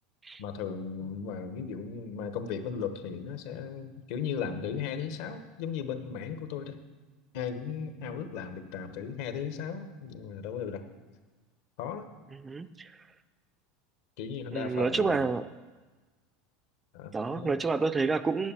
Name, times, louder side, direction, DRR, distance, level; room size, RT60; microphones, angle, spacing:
voice 1, 0.4-6.8 7.3-10.8 11.8-12.1 14.2-15.3 16.9-17.6, left 7 dB, 70° left, 8 dB, 1.1 m, -36 dB
voice 2, 12.4-12.9 14.5-15.4 17.1-18.5, right 4 dB, 15° right, 11 dB, 0.4 m, -29 dB
9.7 x 8.0 x 7.2 m, 1.3 s
supercardioid pair, 140°, 0 cm